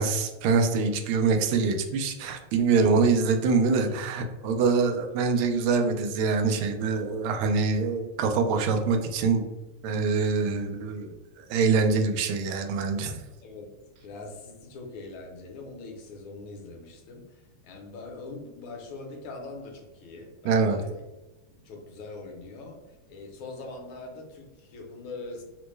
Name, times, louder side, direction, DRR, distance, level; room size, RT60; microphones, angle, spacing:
voice 1, 0.0-9.4 9.8-13.2 20.4-20.8, right 4 dB, 90° right, 4 dB, 1.5 m, -24 dB
voice 2, 13.4-13.7 14.0-21.0 21.5-25.4, left 3 dB, 75° left, 1 dB, 1.5 m, -42 dB
4.1 x 2.1 x 3.1 m, 1.1 s
omnidirectional pair, 2.3 m